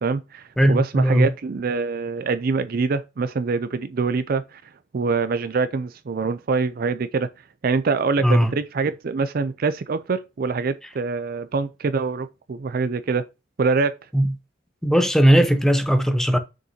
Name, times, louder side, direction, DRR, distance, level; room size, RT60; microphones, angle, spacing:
voice 1, 0.0-4.6 4.9-7.3 7.6-13.3 13.6-13.9, right 4 dB, 50° right, 0.4 m, -24 dB
voice 2, 0.6-1.3 8.2-8.5 14.1-14.3 14.8-16.4, equal, ahead, 0.7 m, -18 dB
6.4 x 5.2 x 2.8 m
head